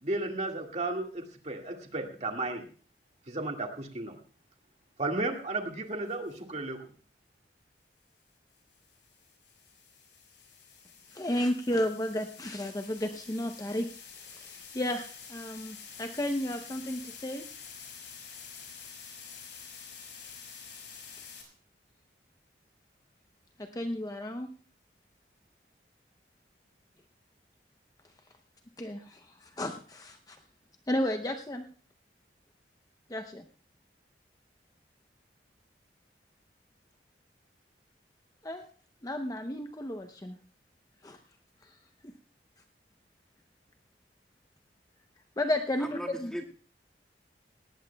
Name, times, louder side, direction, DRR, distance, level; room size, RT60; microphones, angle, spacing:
voice 1, 0.0-2.6 3.3-4.2 5.0-6.8, right 2 dB, 40° right, 3 dB, 1.9 m, -34 dB
sound 1, 6.1-6.4 8.5-21.4, left 6 dB, 80° left, 5.1 m, -48 dB
voice 2, 11.1-13.9 14.2-17.4 23.6-24.5 28.8-30.4 30.9-31.7 33.1-33.4 38.4-38.6 39.0-40.4 41.0-41.2 41.6-41.7 45.4-46.3, left 1 dB, 20° left, 5 dB, 0.7 m, -33 dB
voice 3, 45.8-46.4, equal, 5° left, 0 dB, 1.8 m, -37 dB
18.5 x 18.0 x 2.3 m, 0.42 s
head